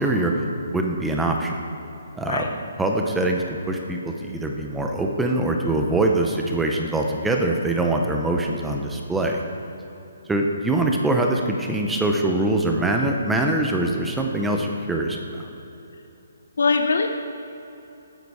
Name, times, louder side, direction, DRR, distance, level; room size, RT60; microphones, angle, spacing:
voice 1, 0.0-1.6 2.2-9.4 10.3-15.5, right 2 dB, 5° right, 1 dB, 0.7 m, -23 dB
voice 2, 16.6-17.1, left 4 dB, 75° left, 6 dB, 0.8 m, -21 dB
19.5 x 9.6 x 4.8 m, 2.9 s
hypercardioid pair, 175°, 0 cm